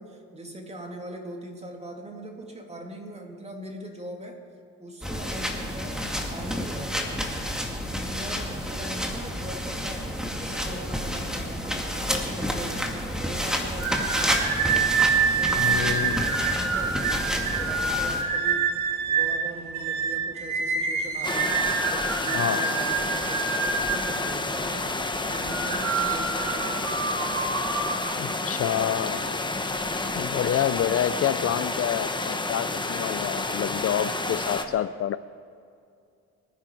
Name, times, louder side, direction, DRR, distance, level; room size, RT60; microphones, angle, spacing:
voice 1, 0.0-4.4 4.8-7.5 8.0-10.1 10.4-15.0 15.4-18.7 19.1-27.0, right 1 dB, 20° right, 2 dB, 2.7 m, -40 dB
sound 1, 5.0-18.2, equal, ahead, 2.3 m, -30 dB
sound 2, 13.8-24.5 25.3-28.0, right 5 dB, 70° right, 2.0 m, -27 dB
voice 2, 15.6-16.2 22.3-22.6 28.2-29.3 30.2-35.2, left 10 dB, 50° left, 14 dB, 0.4 m, -28 dB
sound 3, 21.2-34.6, left 2 dB, 15° left, 1.2 m, -30 dB
25.0 x 10.0 x 4.6 m, 2.4 s
cardioid pair, 90°, 30 cm